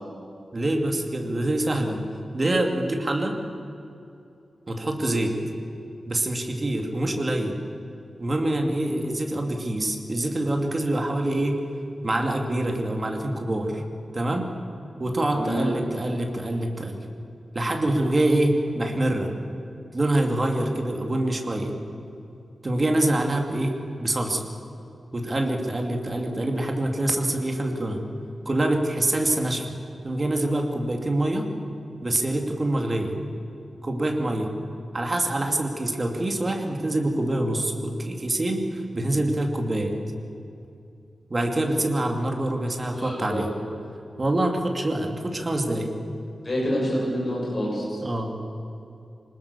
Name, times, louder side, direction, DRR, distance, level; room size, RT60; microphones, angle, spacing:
voice 1, 0.5-2.0 2.3-3.4 4.7-5.3 6.1-7.6 8.2-11.6 12.0-13.8 14.1-14.5 15.0-17.0 17.5-19.3 19.9-21.7 22.6-24.4 25.1-28.0 28.5-29.7 30.0-31.5 32.0-33.1 33.8-34.5 34.9-39.9 41.3-43.5 44.2-45.9 48.0-48.4, right 1 dB, 30° right, 2 dB, 2.6 m, -25 dB
voice 2, 15.3-15.7 42.9-43.4 46.4-48.0, equal, 30° left, -4 dB, 7.5 m, -27 dB
26.5 x 19.5 x 7.1 m, 2.7 s
wide cardioid pair, 145°, 0 cm